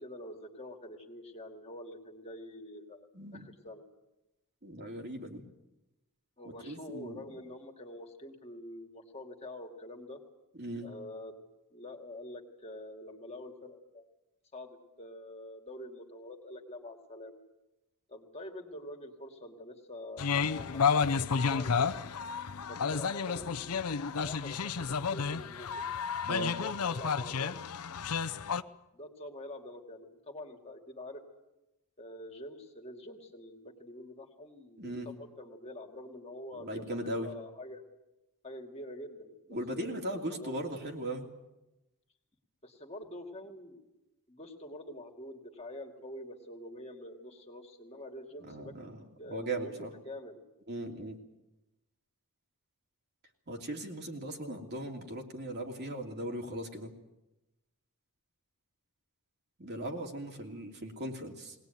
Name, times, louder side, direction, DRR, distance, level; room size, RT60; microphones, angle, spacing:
voice 1, 0.0-3.8 6.4-10.2 10.8-11.4 11.7-14.1 14.5-17.4 18.1-21.9 22.7-23.9 24.2-25.9 26.4-27.6 28.9-31.2 32.0-37.8 38.4-40.6 42.6-43.9 44.3-48.7 49.2-50.4, left 1 dB, 30° left, 3 dB, 2.5 m, -46 dB
voice 2, 3.1-3.5 4.6-5.5 6.4-7.2 10.6-10.9 26.3-26.5 34.8-35.1 36.6-37.3 39.5-41.3 48.5-49.0 49.3-49.9 50.7-51.2 53.5-56.9 59.6-61.5, right 1 dB, 50° right, 2 dB, 2.9 m, -38 dB
sound 1, 20.2-28.6, left 6 dB, 85° left, 0.7 m, -31 dB
21.0 x 19.0 x 9.3 m, 0.96 s
head